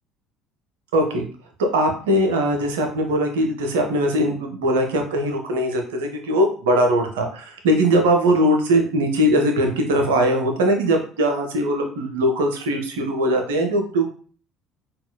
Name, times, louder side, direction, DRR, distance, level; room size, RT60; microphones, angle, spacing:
voice 1, 0.9-1.2 1.6-14.1, equal, 75° right, 3 dB, 0.6 m, -20 dB
3.7 x 2.3 x 2.2 m, 0.43 s
hypercardioid pair, 60°, 0 cm